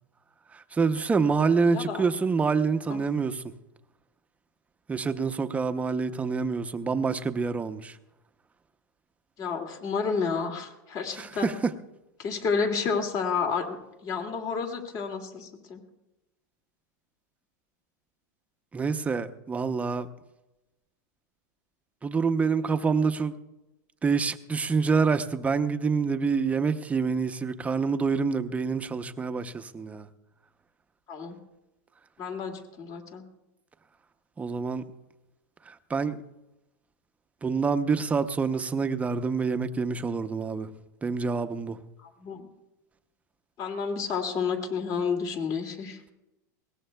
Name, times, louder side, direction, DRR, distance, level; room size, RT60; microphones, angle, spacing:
voice 1, 0.7-3.4 4.9-7.9 11.2-11.7 18.7-20.1 22.0-23.3 24.0-30.1 34.4-34.8 35.9-36.2 37.4-40.7 41.0-41.8, right 5 dB, 15° right, 0.7 m, -26 dB
voice 2, 1.7-2.1 2.9-3.0 9.4-11.5 12.2-13.8 14.0-15.8 31.1-31.4 32.2-33.2 42.0-42.5 43.6-46.0, left 5 dB, 40° left, 2.2 m, -30 dB
21.0 x 18.5 x 2.3 m
supercardioid pair, 130°, 10 cm